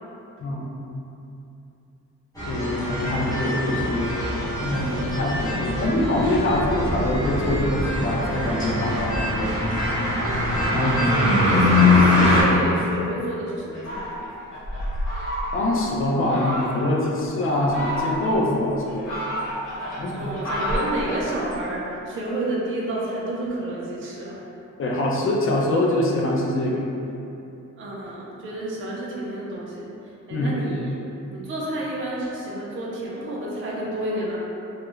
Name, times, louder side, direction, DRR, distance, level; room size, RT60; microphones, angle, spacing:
voice 1, 0.4-1.0 2.4-4.2 4.6-9.5 10.7-11.1 15.5-19.2 19.9-20.3 24.8-27.0 30.3-30.6, left 1 dB, 45° left, -2 dB, 0.4 m, -24 dB
sound 1, 2.4-12.4, left 2 dB, 10° left, 0.7 m, -22 dB
voice 2, 4.5-5.2 11.0-14.2 20.1-24.4 27.8-29.9 30.3-30.9 31.3-34.4, right 1 dB, 40° right, -5 dB, 0.4 m, -30 dB
Fowl, 13.7-15.8 16.3-16.9 17.5-18.4 18.8-21.6, equal, 75° left, 1.2 m, -30 dB
2.3 x 2.1 x 3.0 m, 2.8 s
wide cardioid pair, 140°, 31 cm